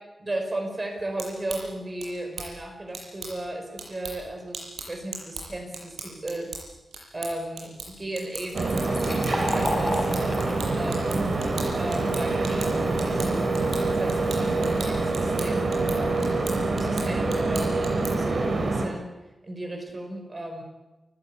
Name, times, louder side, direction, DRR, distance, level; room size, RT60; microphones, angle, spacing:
voice 1, 0.2-6.5 7.1-10.1 10.7-11.2 11.8-13.5 13.9-16.5 16.8-19.1 19.4-20.6, right 1 dB, 25° right, 4 dB, 5.2 m, -35 dB
sound 1, 1.0-18.3, right 3 dB, 85° right, 7.6 m, -41 dB
Fill (with liquid), 8.5-15.9, left 1 dB, 15° left, 4.2 m, -36 dB
sound 2, 8.5-18.9, right 3 dB, 50° right, 3.6 m, -26 dB
29.5 x 15.0 x 8.6 m, 1.1 s
wide cardioid pair, 160°, 0 cm